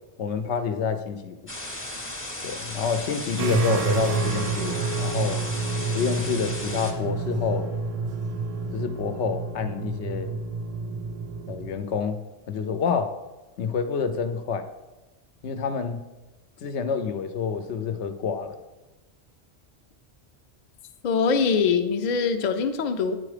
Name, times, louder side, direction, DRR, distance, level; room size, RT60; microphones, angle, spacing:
voice 1, 0.2-1.4 2.4-5.4 5.9-7.7 8.7-10.4 11.5-12.2 12.5-13.2 13.6-14.7 15.4-16.0 16.6-18.6, left 6 dB, 85° left, 9 dB, 0.9 m, -28 dB
sound 1, 1.5-6.9, left 1 dB, 15° left, 0.7 m, -36 dB
sound 2, 3.4-11.8, right 4 dB, 50° right, 0.4 m, -29 dB
voice 2, 21.0-23.1, left 5 dB, 50° left, 8 dB, 0.6 m, -23 dB
8.8 x 4.2 x 4.9 m, 1.1 s
omnidirectional pair, 1.1 m